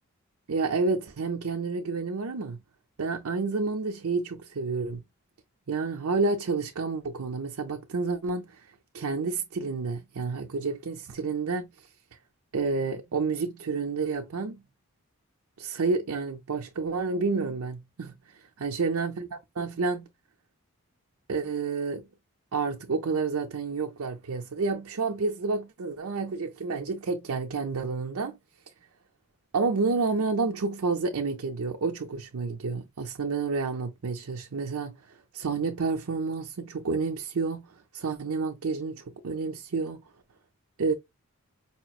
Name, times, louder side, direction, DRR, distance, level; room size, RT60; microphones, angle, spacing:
voice 1, 0.5-2.6 3.0-5.0 5.7-8.6 8.9-11.7 12.5-14.6 15.6-18.1 18.6-19.3 19.6-20.1 21.3-22.1 22.5-28.4 29.5-37.7 37.9-40.0 40.8-40.9, right 4 dB, 80° right, 0.6 m, -29 dB
4.9 x 3.0 x 2.3 m
head